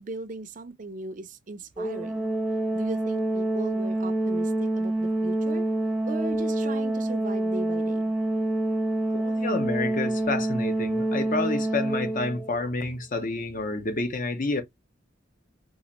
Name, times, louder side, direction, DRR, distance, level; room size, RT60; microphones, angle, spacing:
voice 1, 0.0-2.3 2.7-5.7 6.1-8.0, right 2 dB, 45° right, 0.5 m, -38 dB
Organ, 1.8-12.6, right 1 dB, ahead, 0.7 m, -27 dB
voice 2, 9.1-14.6, left 3 dB, 45° left, 0.8 m, -29 dB
3.9 x 2.5 x 2.9 m
head